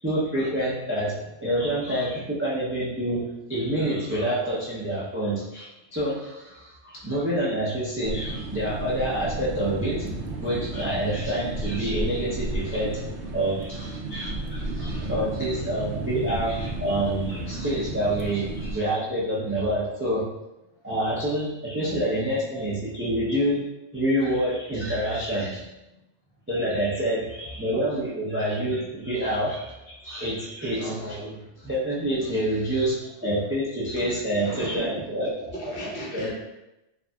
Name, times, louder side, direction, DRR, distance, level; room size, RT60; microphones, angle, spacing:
voice 1, 0.0-10.1 10.4-13.0 13.3-20.3 20.8-23.6 23.9-25.6 26.5-35.3 36.1-36.3, right 1 dB, 20° right, -8 dB, 0.4 m, -27 dB
sound 1, 8.0-18.8, right 2 dB, 70° right, 0.8 m, -33 dB
voice 2, 34.4-35.1 35.5-36.3, equal, 45° left, -7 dB, 1.1 m, -37 dB
4.0 x 2.5 x 2.3 m, 0.93 s
omnidirectional pair, 1.2 m